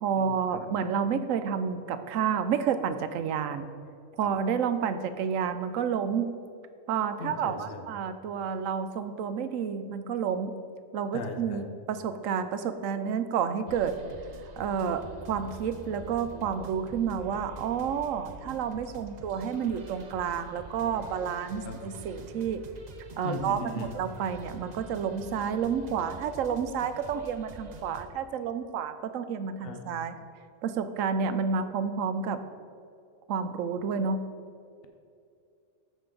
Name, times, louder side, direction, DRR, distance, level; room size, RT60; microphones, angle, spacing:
voice 1, 0.0-3.6 4.2-6.4 6.9-10.5 10.9-14.0 14.6-22.6 23.2-30.1 30.6-32.4 33.3-34.2, right 7 dB, 75° right, 10 dB, 1.0 m, -30 dB
voice 2, 7.2-7.9 11.1-11.7 21.6-21.8 23.2-23.9 29.6-29.9, left 3 dB, 50° left, 4 dB, 1.0 m, -38 dB
sound 1, 13.7-28.1, right 2 dB, 40° right, 0.6 m, -46 dB
13.5 x 5.2 x 3.8 m, 2.5 s
omnidirectional pair, 1.4 m